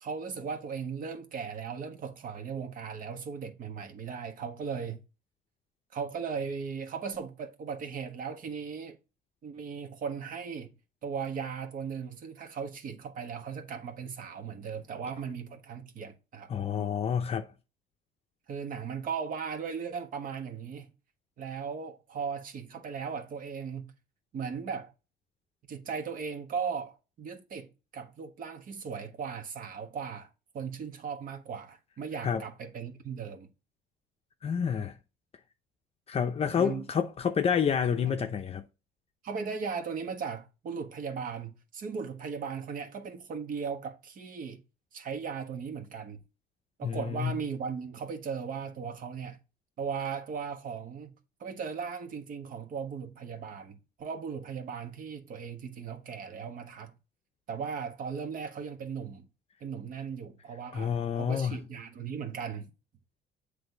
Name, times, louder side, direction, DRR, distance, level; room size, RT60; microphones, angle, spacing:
voice 1, 0.0-5.0 5.9-9.0 9.4-10.7 11.0-16.5 18.5-20.9 21.4-23.9 24.3-24.9 25.7-27.7 27.9-30.3 30.5-33.5 36.6-36.8 38.0-38.2 39.2-44.6 44.9-46.2 46.8-49.4 49.8-51.1 51.4-56.9 57.5-59.2 59.6-62.7, right 6 dB, 55° right, 1.3 m, -37 dB
voice 2, 16.5-17.5 32.2-32.4 34.4-34.9 36.1-38.6 46.8-47.3 60.7-61.6, left 7 dB, 35° left, 0.6 m, -29 dB
7.9 x 3.3 x 3.9 m
cardioid pair, 110°, 17 cm